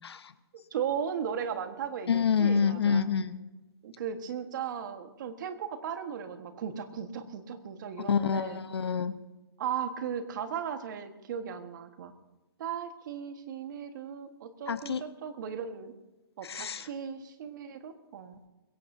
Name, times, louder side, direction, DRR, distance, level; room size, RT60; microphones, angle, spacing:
voice 1, 0.0-0.3 2.1-3.4 8.1-9.1 14.7-15.0 16.4-16.9, left 6 dB, 80° left, 12 dB, 0.9 m, -27 dB
voice 2, 0.7-3.1 3.8-8.6 9.6-12.1 12.6-15.9 16.4-18.4, right 8 dB, 50° right, 9 dB, 1.5 m, -36 dB
21.5 x 16.5 x 2.8 m, 1.1 s
hypercardioid pair, 150°, 13 cm